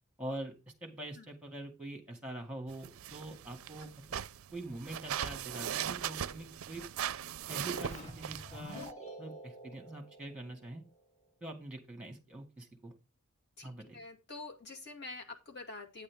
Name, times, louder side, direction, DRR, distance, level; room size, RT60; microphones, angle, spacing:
voice 1, 0.2-0.5 0.8-4.1 4.5-6.8 7.5-8.9 9.2-10.8 11.4-12.9 13.6-14.0, right 1 dB, 5° right, 4 dB, 2.1 m, -44 dB
sound 1, 2.7-8.9, right 9 dB, 65° right, 0.4 m, -39 dB
Keyboard (musical), 7.6-11.0, equal, 30° left, 2.7 m, -49 dB
voice 2, 13.6-16.0, left 3 dB, 50° left, 2 dB, 2.2 m, -46 dB
9.0 x 8.6 x 3.5 m, 0.25 s
head